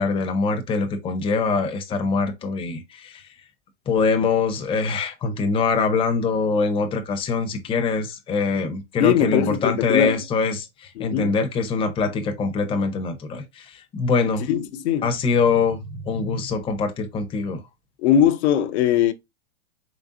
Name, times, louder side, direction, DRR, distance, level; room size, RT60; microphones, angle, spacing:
voice 1, 0.0-3.2 3.9-14.5 15.0-17.6, left 4 dB, 15° left, 0.6 m, -23 dB
voice 2, 9.0-10.2 11.0-11.3 14.5-15.1 18.0-19.1, left 9 dB, 70° left, 0.6 m, -20 dB
4.0 x 3.3 x 2.4 m
supercardioid pair, 135°, 35 cm